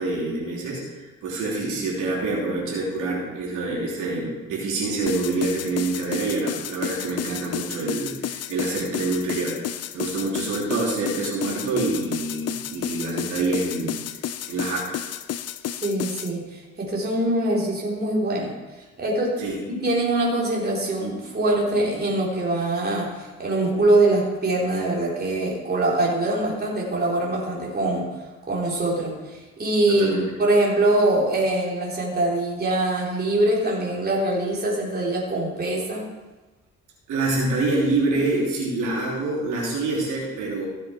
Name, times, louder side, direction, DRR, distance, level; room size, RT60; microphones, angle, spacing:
voice 1, 0.0-14.0 14.5-15.0 19.4-19.6 29.9-30.3 37.1-40.7, right 3 dB, 90° right, -4 dB, 3.0 m, -26 dB
sound 1, 5.1-16.3, left 11 dB, 55° left, 0.6 m, -32 dB
voice 2, 15.8-18.5 19.0-19.4 19.7-28.1 28.5-36.0, right 2 dB, 30° right, -4 dB, 3.6 m, -23 dB
15.5 x 7.7 x 4.4 m, 1.2 s
cardioid pair, 90°, 30 cm